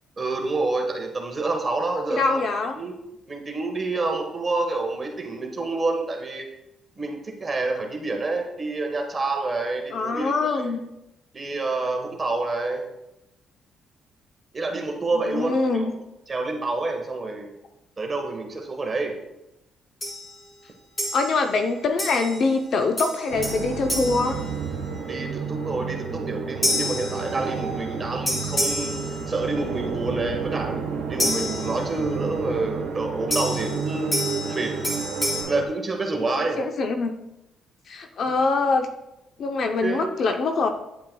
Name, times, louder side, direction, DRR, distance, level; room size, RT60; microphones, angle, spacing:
voice 1, 0.2-2.4 2.8-2.9 3.3-6.5 7.0-10.7 11.3-12.8 14.5-15.9 16.3-17.5 18.0-19.2 25.0-28.9 29.3-30.8 31.1-34.7 35.5-36.6 39.8-40.1, right 3 dB, 30° right, 2 dB, 1.2 m, -28 dB
voice 2, 2.1-2.8 9.9-10.8 15.1-15.9 21.1-24.4 36.4-37.1 37.9-38.9 39.4-40.7, left 3 dB, 60° left, 5 dB, 0.6 m, -24 dB
sound 1, 20.0-20.4 21.0-21.6 22.0-22.6 23.0-25.1 26.6-27.8 28.3-29.7 31.2-32.2 33.3-35.4, left 1 dB, 30° left, 3.1 m, -29 dB
sound 2, 23.3-35.6, right 5 dB, 85° right, 1.1 m, -31 dB
9.1 x 8.4 x 2.2 m, 0.90 s
cardioid pair, 90°, 0 cm